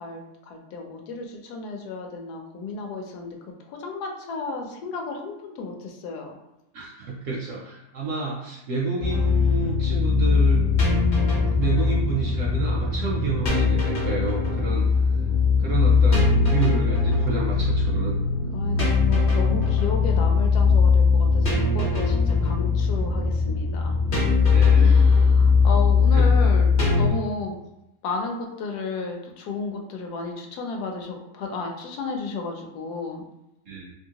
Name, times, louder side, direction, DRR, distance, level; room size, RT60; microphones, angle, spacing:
voice 1, 0.0-6.4 18.5-24.0 24.7-26.7 27.0-27.6 28.0-33.3, left 4 dB, 80° left, 2 dB, 1.1 m, -33 dB
voice 2, 6.7-10.7 11.1-14.9 15.6-18.2 24.5-25.0 26.1-26.3 33.7-33.9, right 4 dB, 70° right, -3 dB, 0.8 m, -29 dB
sound 1, 9.0-27.1, left 4 dB, 45° left, 0.7 m, -20 dB
2.9 x 2.6 x 2.8 m, 0.88 s
omnidirectional pair, 1.7 m